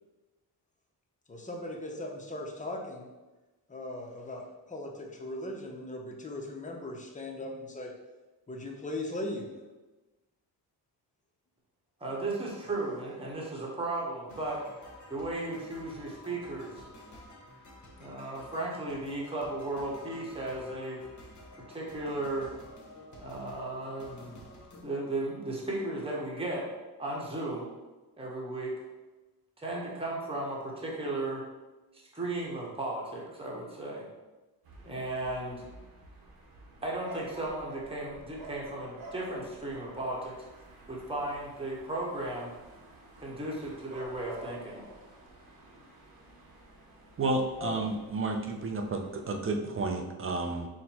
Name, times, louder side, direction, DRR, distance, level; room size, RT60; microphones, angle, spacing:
voice 1, 1.3-3.1 3.7-7.9 8.5-9.5 47.6-47.8, left 1 dB, 20° left, 0 dB, 0.7 m, -38 dB
voice 2, 12.0-14.6 15.1-16.9 18.0-21.0 21.7-22.5 23.2-24.4 24.8-26.7 27.0-27.7 28.2-28.7 29.6-31.4 32.1-34.1 34.8-35.6 36.8-40.4 40.9-42.5 43.2-44.8, right 2 dB, 15° right, -4 dB, 1.1 m, -35 dB
sound 1, 14.3-24.8, left 1 dB, 45° left, 1.1 m, -51 dB
sound 2, 34.6-49.5, right 2 dB, 65° right, 1.1 m, -51 dB
voice 3, 47.2-50.7, right 2 dB, 35° right, 3 dB, 0.5 m, -31 dB
4.3 x 2.2 x 4.3 m, 1.1 s
cardioid pair, 95°, 40 cm